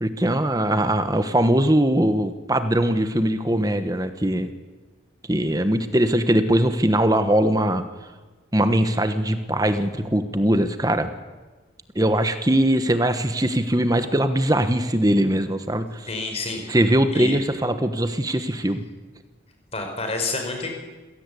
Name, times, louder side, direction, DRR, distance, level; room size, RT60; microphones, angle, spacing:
voice 1, 0.0-4.5 5.3-7.8 8.5-11.1 11.9-16.1 16.7-18.8, right 1 dB, 20° right, 9 dB, 1.2 m, -21 dB
voice 2, 16.1-16.7 17.1-17.4 19.7-20.7, left 3 dB, 30° left, 4 dB, 4.9 m, -28 dB
26.5 x 17.0 x 8.5 m, 1.3 s
head